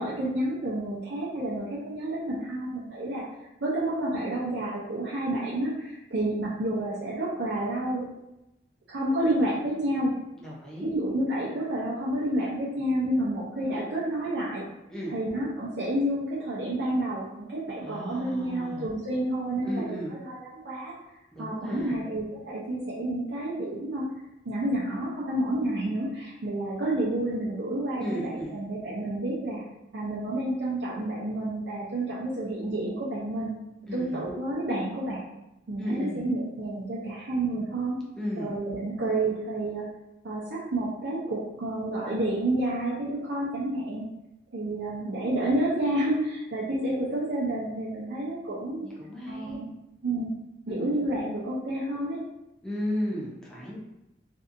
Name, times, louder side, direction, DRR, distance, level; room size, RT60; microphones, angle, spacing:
voice 1, 0.0-3.2 3.6-8.1 8.9-10.1 10.8-14.7 15.1-20.9 21.4-24.0 24.4-29.6 29.9-33.5 33.9-35.2 35.7-38.0 38.4-39.8 40.2-44.0 44.5-48.9 49.3-49.7 50.0-50.3 50.7-52.2, right 1 dB, 75° right, -8 dB, 0.5 m, -29 dB
voice 2, 10.4-10.9 14.9-15.1 17.8-18.9 19.6-20.1 21.3-22.0 28.0-28.6 33.9-34.2 35.8-36.2 38.2-38.5 48.8-49.6 50.7-50.9 52.6-53.8, equal, 5° left, -5 dB, 0.5 m, -34 dB
2.7 x 2.4 x 2.5 m, 0.92 s
head